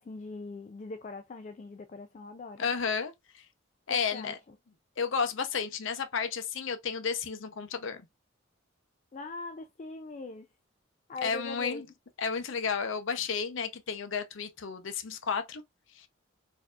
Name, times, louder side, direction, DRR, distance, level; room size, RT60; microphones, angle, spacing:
voice 1, 0.0-2.7 3.9-4.6 9.1-10.5 11.1-11.9, left 3 dB, 35° left, 0.3 m, -42 dB
voice 2, 2.6-3.4 3.9-4.4 5.0-8.0 11.2-11.8 12.2-15.6 16.0-16.1, left 6 dB, 70° left, 0.6 m, -32 dB
4.4 x 2.7 x 2.3 m
head